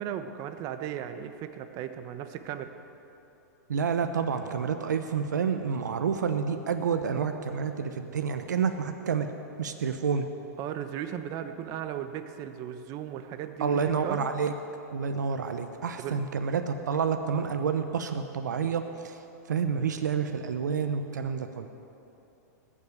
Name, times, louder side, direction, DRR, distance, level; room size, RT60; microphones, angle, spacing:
voice 1, 0.0-2.7 10.6-14.3 16.0-16.2, right 10 dB, 40° right, 9 dB, 1.1 m, -36 dB
voice 2, 3.7-9.3 9.6-10.3 13.6-14.5 14.9-19.2 19.5-21.7, right 6 dB, 90° right, 7 dB, 0.9 m, -29 dB
19.5 x 7.6 x 8.3 m, 2.9 s
hypercardioid pair, 120°, 9 cm